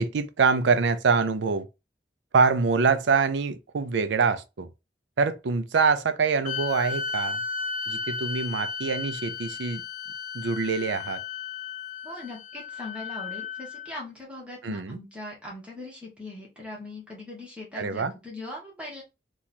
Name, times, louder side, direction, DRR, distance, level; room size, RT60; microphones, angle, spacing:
voice 1, 0.0-1.7 2.3-4.7 5.2-7.4 7.9-9.8 10.3-11.2 14.6-15.0 17.8-18.1, right 5 dB, 85° right, 0.5 m, -24 dB
sound 1, 6.4-13.9, left 5 dB, 45° left, 0.4 m, -34 dB
voice 2, 12.0-19.0, left 2 dB, 5° right, 1.0 m, -40 dB
2.9 x 2.3 x 4.1 m
head